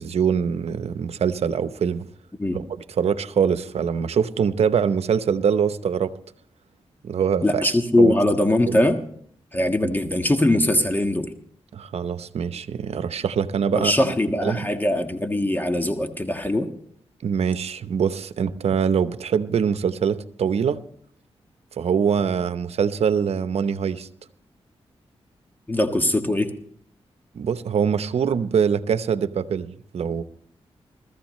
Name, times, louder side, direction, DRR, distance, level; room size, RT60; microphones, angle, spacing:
voice 1, 0.0-2.0 2.5-2.6 3.0-6.1 7.0-7.7 8.0-8.1 8.7-8.8 9.8-9.9 11.7-14.1 14.4-14.7 17.2-20.8 21.8-24.1 27.3-30.2, right 7 dB, 75° right, 0.8 m, -23 dB
voice 2, 7.4-9.0 9.5-11.3 13.7-16.7 25.7-26.5, left 1 dB, 15° left, 1.5 m, -21 dB
21.5 x 14.0 x 3.1 m
cardioid pair, 60°, 11 cm